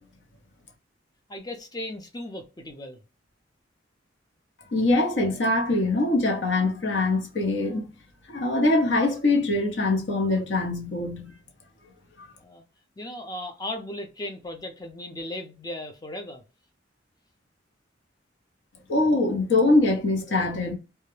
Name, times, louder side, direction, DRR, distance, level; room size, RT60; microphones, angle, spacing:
voice 1, 1.3-3.0 12.4-12.6 13.0-16.4, left 1 dB, 20° left, 0.4 m, -36 dB
voice 2, 4.7-7.9 8.3-11.4 18.9-20.7, left 2 dB, 65° left, 0.8 m, -23 dB
2.3 x 2.1 x 3.0 m
head